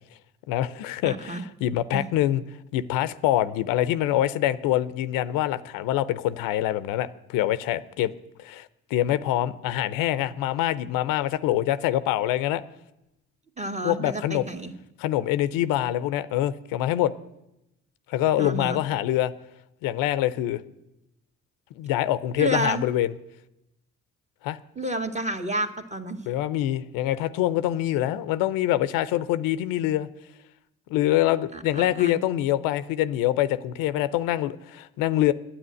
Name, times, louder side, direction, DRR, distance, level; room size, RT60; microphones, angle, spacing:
voice 1, 0.5-2.4 2.7-8.1 8.4-12.6 13.8-14.5 15.0-17.1 18.1-19.3 19.8-20.6 21.8-23.1 24.4-24.6 26.3-30.1 30.9-35.3, left 13 dB, 90° left, 0.6 m, -25 dB
voice 2, 1.1-1.4 1.9-2.0 13.6-14.7 18.4-18.8 22.4-22.8 24.8-26.2 31.5-32.2, right 1 dB, 20° right, 1.7 m, -30 dB
9.8 x 8.8 x 9.8 m
hypercardioid pair, 45°, 33 cm